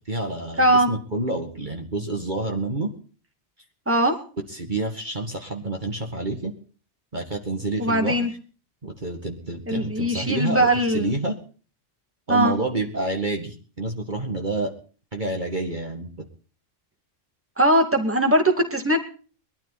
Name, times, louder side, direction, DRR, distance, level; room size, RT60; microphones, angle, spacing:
voice 1, 0.1-2.9 4.5-6.6 7.1-8.3 8.8-11.4 12.3-14.7 15.1-16.1, right 2 dB, 35° right, 2 dB, 2.2 m, -28 dB
voice 2, 0.6-0.9 3.9-4.1 7.8-8.3 9.7-11.1 12.3-12.5 17.6-19.0, right 1 dB, 10° right, 5 dB, 2.3 m, -20 dB
21.5 x 13.0 x 4.2 m, 0.40 s
omnidirectional pair, 1.3 m